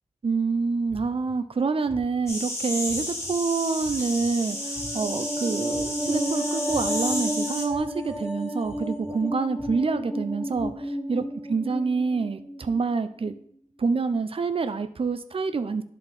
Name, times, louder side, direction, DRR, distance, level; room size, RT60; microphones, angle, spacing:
voice 1, 0.2-13.4 13.8-15.8, right 4 dB, 45° right, 10 dB, 0.5 m, -27 dB
sound 1, 0.9-1.3 1.9-2.3 2.9-3.3 3.8-4.2 4.7-5.1 5.7-6.1 6.7-7.1 7.7-8.1 8.6-9.1 9.6-10.0 10.5-10.6, left 1 dB, 50° left, 2.0 m, -45 dB
sound 2, 2.3-7.6, left 1 dB, 20° left, 2.3 m, -32 dB
sound 3, 4.5-12.9 13.2-13.4, equal, 5° right, 1.0 m, -32 dB
11.0 x 4.2 x 3.4 m, 0.64 s
wide cardioid pair, 90°, 13 cm